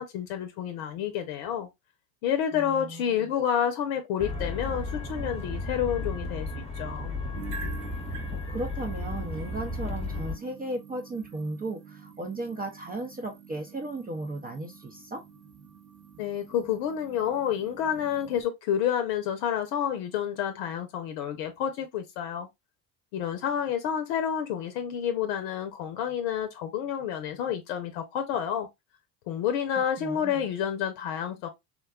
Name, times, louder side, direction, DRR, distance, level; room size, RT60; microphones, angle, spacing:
voice 1, 0.0-1.7 2.2-7.1 16.2-22.5 23.1-28.7 29.3-31.5, left 9 dB, 70° left, 0.7 m, -29 dB
voice 2, 2.5-3.3 8.3-15.2 30.0-30.5, right 2 dB, 20° right, 0.5 m, -36 dB
sound 1, 4.2-10.4, left 2 dB, 10° left, 0.8 m, -34 dB
sound 2, 7.3-18.4, right 6 dB, 40° right, 0.9 m, -47 dB
3.6 x 2.2 x 2.3 m
hypercardioid pair, 75°, 49 cm